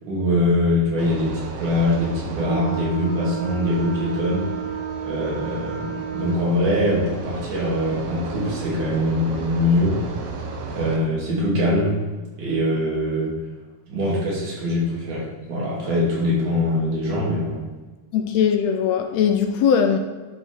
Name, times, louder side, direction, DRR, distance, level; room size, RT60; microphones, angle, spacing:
voice 1, 0.0-4.5 5.0-10.0 10.7-12.0 12.4-13.3 13.9-17.6, left 1 dB, 90° right, -5 dB, 4.0 m, -23 dB
sound 1, 1.0-11.0, right 5 dB, 65° right, 1.9 m, -31 dB
voice 2, 18.1-20.0, left 7 dB, 75° left, 6 dB, 1.7 m, -20 dB
11.5 x 5.4 x 4.7 m, 1.3 s
omnidirectional pair, 3.4 m